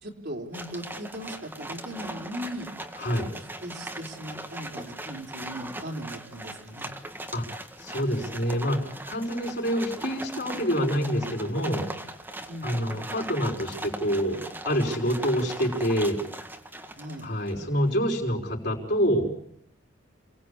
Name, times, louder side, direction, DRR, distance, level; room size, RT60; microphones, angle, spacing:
voice 1, 0.0-2.7 3.3-6.9 12.5-12.8 17.0-17.3, equal, 50° right, 1 dB, 3.7 m, -38 dB
sound 1, 0.5-17.7, right 1 dB, 10° right, 1.8 m, -39 dB
voice 2, 7.8-11.9 12.6-14.4 14.7-16.2 17.2-19.3, equal, 55° left, 1 dB, 5.3 m, -26 dB
28.5 x 18.5 x 8.6 m, 0.71 s
head